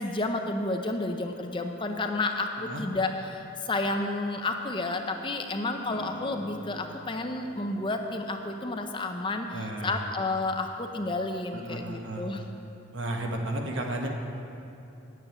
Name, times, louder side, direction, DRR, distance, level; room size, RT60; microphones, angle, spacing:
voice 1, 0.0-12.4, left 2 dB, 25° left, 5 dB, 0.5 m, -31 dB
sound 1, 5.9-10.8, equal, 60° left, 1.1 m, -47 dB
voice 2, 9.5-10.0 11.5-12.3 12.9-14.1, right 1 dB, 60° right, 1 dB, 1.4 m, -33 dB
9.6 x 7.1 x 9.1 m, 2.8 s
head